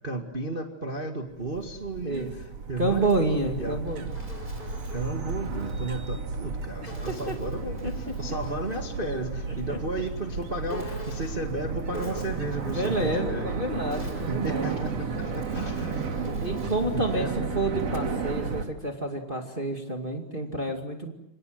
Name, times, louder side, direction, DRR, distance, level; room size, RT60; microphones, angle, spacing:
voice 1, 0.0-3.1 3.6-3.8 4.9-13.6 14.3-16.5 16.9-17.5, right 2 dB, 70° right, 4 dB, 0.5 m, -34 dB
sound 1, 1.3-18.6, right 4 dB, 45° right, 2.9 m, -33 dB
voice 2, 2.8-4.1 6.8-7.3 7.8-7.9 9.5-9.8 12.7-14.8 16.4-17.3 17.5-21.1, right 2 dB, 20° right, 3 dB, 1.3 m, -29 dB
Insect, 3.6-5.8 6.8-8.9 10.7-11.5 11.9-13.1 13.7-16.9, equal, 10° left, 5.6 m, -45 dB
28.0 x 25.5 x 7.8 m, 0.83 s
omnidirectional pair, 4.7 m